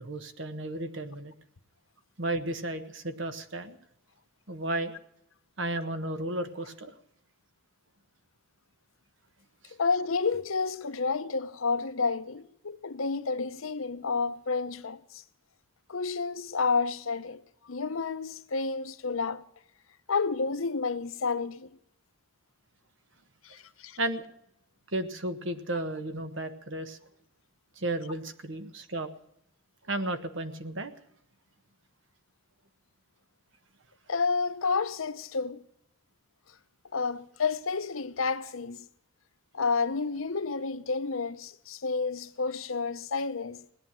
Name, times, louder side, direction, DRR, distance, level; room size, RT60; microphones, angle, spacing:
voice 1, 0.0-1.3 2.2-3.8 4.5-4.9 5.6-6.9 9.6-9.7 24.0-24.2 24.9-27.0 27.8-29.1 29.9-30.9, right 1 dB, 60° right, 1.4 m, -33 dB
voice 2, 9.8-15.2 15.9-19.4 20.1-21.7 23.4-24.0 34.1-35.6 36.9-38.9 39.5-43.6, left 4 dB, 80° left, 0.8 m, -30 dB
18.5 x 10.0 x 7.5 m
head